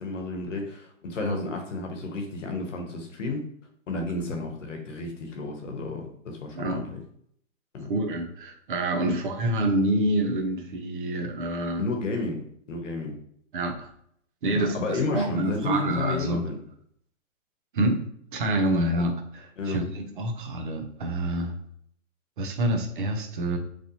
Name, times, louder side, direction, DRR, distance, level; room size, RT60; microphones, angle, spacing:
voice 1, 0.0-3.4 3.9-7.0 7.7-7.9 9.1-9.2 11.8-12.4 12.7-13.1 14.5-16.6 19.0-19.1 19.6-19.8, left 3 dB, 65° left, 3 dB, 1.0 m, -31 dB
voice 2, 6.5-6.9 7.9-11.9 13.5-13.9 14.4-16.4 17.7-18.0 18.3-21.5 22.4-23.6, right 1 dB, 40° right, 4 dB, 0.6 m, -27 dB
3.2 x 2.6 x 2.7 m, 0.68 s
hypercardioid pair, 155°, 40 cm